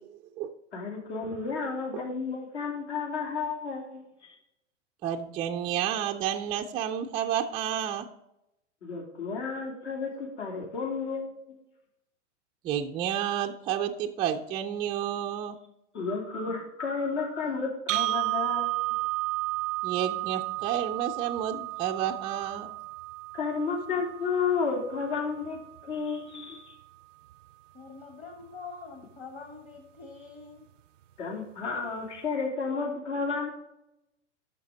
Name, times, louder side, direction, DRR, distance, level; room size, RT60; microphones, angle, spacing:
voice 1, 0.7-4.3 8.8-11.6 15.9-18.7 23.3-26.7 31.2-33.5, left 5 dB, 65° left, -1 dB, 3.2 m, -32 dB
voice 2, 5.0-8.1 12.6-15.6 19.8-22.7, right 10 dB, 15° right, 1 dB, 0.3 m, -30 dB
sound 1, 17.9-25.9, right 21 dB, 85° right, 0.5 m, -33 dB
voice 3, 27.7-30.7, left 4 dB, 20° left, 3 dB, 1.3 m, -45 dB
11.0 x 6.4 x 3.9 m, 0.85 s
hypercardioid pair, 115°, 37 cm